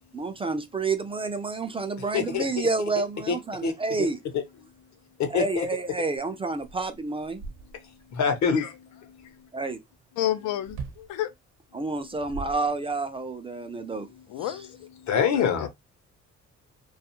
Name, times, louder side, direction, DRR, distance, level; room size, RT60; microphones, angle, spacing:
voice 1, 0.1-4.2 5.3-7.4 9.5-9.8 11.7-14.1 14.4-14.7, right 3 dB, 20° right, 0.3 m, -29 dB
voice 2, 5.2-5.7 8.1-8.8 15.0-15.7, left 6 dB, 65° left, 0.8 m, -24 dB
sound 1, 6.2-6.3 6.6-8.1 10.7-11.1 12.0-13.2, right 5 dB, 60° right, 0.8 m, -40 dB
voice 3, 10.2-11.3 14.3-14.7 15.3-15.7, left 12 dB, 90° left, 0.5 m, -30 dB
2.3 x 2.3 x 2.9 m
cardioid pair, 90°, 30 cm